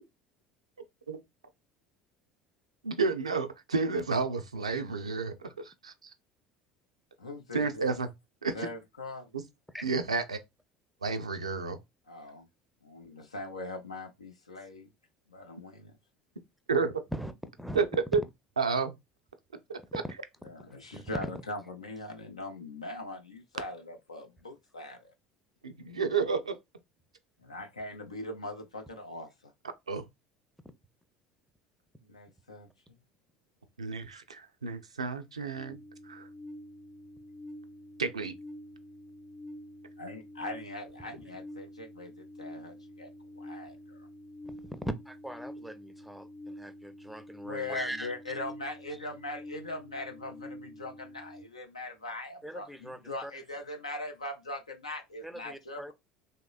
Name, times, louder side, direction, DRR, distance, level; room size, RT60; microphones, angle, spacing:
voice 1, 2.8-6.1 7.5-8.1 8.4-8.7 9.3-9.4 9.8-10.4 11.0-11.8 16.7-17.0 17.7-18.2 18.6-18.9 19.7-20.0 25.6-26.5 29.9-30.0 33.8-35.8 36.0-36.3 38.0-38.3, right 4 dB, 85° right, 0.4 m, -31 dB
voice 2, 7.2-7.9 8.5-9.3 12.1-12.5 12.8-14.9 15.3-15.9 20.4-25.1 27.4-29.5 32.0-32.7 40.0-43.1 43.4-44.0 47.4-55.9, left 2 dB, 85° left, 0.5 m, -41 dB
sound 1, 35.6-51.4, left 1 dB, 50° left, 0.8 m, -47 dB
voice 3, 44.4-48.1 52.4-53.3 55.2-55.9, right 1 dB, ahead, 0.5 m, -40 dB
3.1 x 2.8 x 2.3 m
figure-of-eight pair, 65°, 3 cm